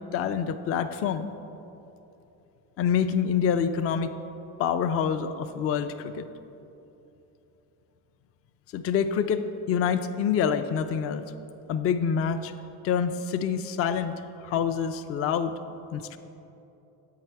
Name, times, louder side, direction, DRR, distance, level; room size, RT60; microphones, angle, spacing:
voice 1, 0.1-1.3 2.8-4.1 4.6-6.3 8.7-11.2 11.7-12.5 12.8-14.1 14.4-15.5 15.9-16.2, left 7 dB, 35° left, 10 dB, 0.4 m, -26 dB
8.0 x 4.7 x 4.5 m, 2.9 s
hypercardioid pair, 65°, 46 cm